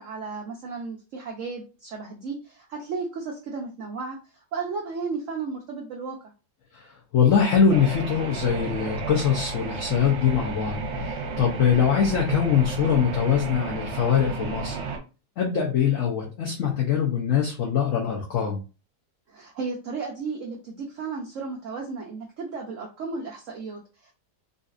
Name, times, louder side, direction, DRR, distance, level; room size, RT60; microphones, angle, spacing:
voice 1, 0.0-6.2 19.3-24.1, right 4 dB, 60° right, 0 dB, 0.8 m, -34 dB
voice 2, 6.7-14.8 15.4-18.6, left 7 dB, 60° left, -1 dB, 0.9 m, -23 dB
sound 1, 7.7-15.0, right 4 dB, 85° right, 1.5 m, -32 dB
4.0 x 2.5 x 2.5 m, 0.32 s
omnidirectional pair, 1.9 m